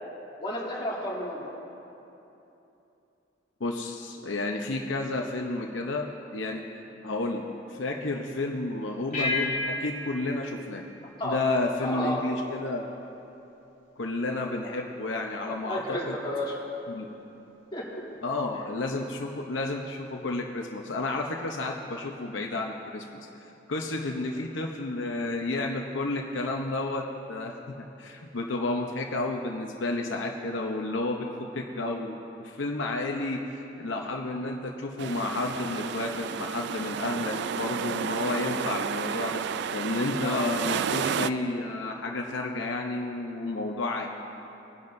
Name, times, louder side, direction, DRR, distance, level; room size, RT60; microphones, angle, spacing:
voice 1, 0.4-1.5 11.2-11.4 11.8-12.2 15.6-16.6 17.7-18.0 40.2-40.4, left 1 dB, 25° left, -6 dB, 2.7 m, -32 dB
voice 2, 3.6-10.8 11.2-12.9 14.0-16.1 16.9-17.1 18.2-23.0 23.7-31.3 31.5-39.4 39.7-44.1, left 2 dB, 80° left, 1 dB, 0.8 m, -31 dB
sound 1, 9.1-11.9, left 2 dB, 45° left, 2.9 m, -33 dB
sound 2, 35.0-41.3, right 7 dB, 60° right, 0.3 m, -31 dB
21.5 x 11.0 x 2.6 m, 2.9 s
head